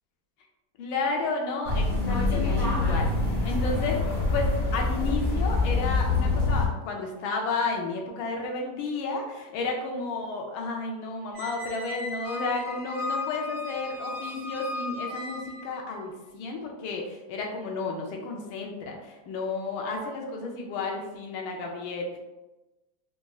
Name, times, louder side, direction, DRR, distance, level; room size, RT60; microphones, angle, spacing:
voice 1, 0.8-3.1 3.4-22.2, left 3 dB, 90° left, 1 dB, 1.4 m, -32 dB
sound 1, 1.6-6.7, left 3 dB, 35° left, 0.6 m, -25 dB
Squeak, 11.3-15.8, left 3 dB, 70° right, 1.1 m, -36 dB
4.0 x 2.4 x 2.3 m, 1.1 s
omnidirectional pair, 2.2 m